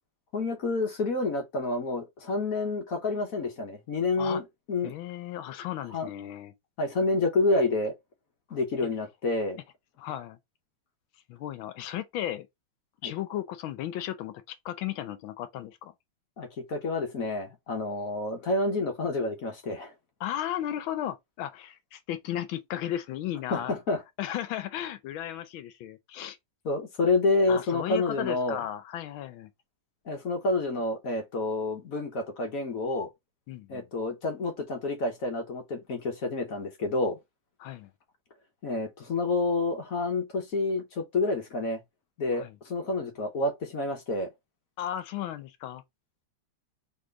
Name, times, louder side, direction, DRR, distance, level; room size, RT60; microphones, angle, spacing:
voice 1, 0.3-4.9 5.9-6.1 6.8-7.9 8.5-9.6 13.0-13.1 16.4-19.9 23.5-24.0 26.6-28.6 30.1-33.1 33.7-37.2 38.6-41.8 42.2-44.3, left 2 dB, 55° left, 1.2 m, -29 dB
voice 2, 4.8-6.5 10.0-10.4 11.3-12.5 13.0-15.9 20.2-23.7 24.2-26.4 27.5-29.5 33.5-33.8 37.6-37.9 42.3-42.6 44.8-45.8, left 11 dB, 80° left, 1.4 m, -35 dB
4.2 x 3.1 x 3.9 m
omnidirectional pair, 2.2 m